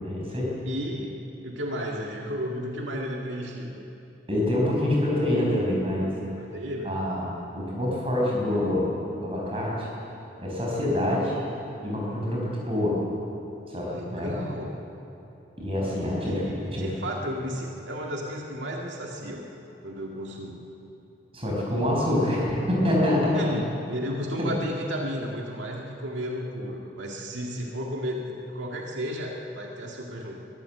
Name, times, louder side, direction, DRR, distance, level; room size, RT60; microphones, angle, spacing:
voice 1, 0.0-0.5 4.3-6.1 6.8-7.3 7.5-9.9 10.4-11.4 11.8-13.0 13.7-14.4 15.6-16.4 16.7-17.0 21.3-23.5 24.4-24.5, left 1 dB, 30° right, -3 dB, 5.8 m, -26 dB
voice 2, 0.7-1.2 1.4-3.8 6.4-7.0 13.8-14.8 15.7-19.4 19.8-20.6 23.3-30.4, equal, 90° right, -1 dB, 2.1 m, -33 dB
22.5 x 15.0 x 8.0 m, 3.0 s
head